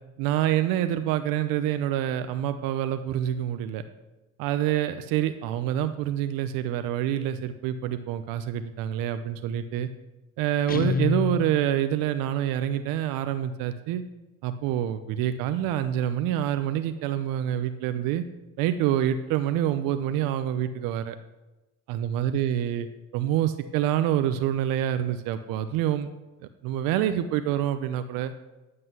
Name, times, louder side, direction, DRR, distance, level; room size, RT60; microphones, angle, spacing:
voice 1, 0.2-3.8 4.4-9.9 10.4-14.0 14.4-18.2 18.6-21.2 21.9-22.9 23.1-26.1 26.6-28.3, right 11 dB, 75° right, 10 dB, 0.8 m, -26 dB
Guitar, 10.7-11.9, left 6 dB, 25° left, 0.8 m, -28 dB
9.7 x 7.6 x 8.1 m, 1.1 s
supercardioid pair, 70°, 34 cm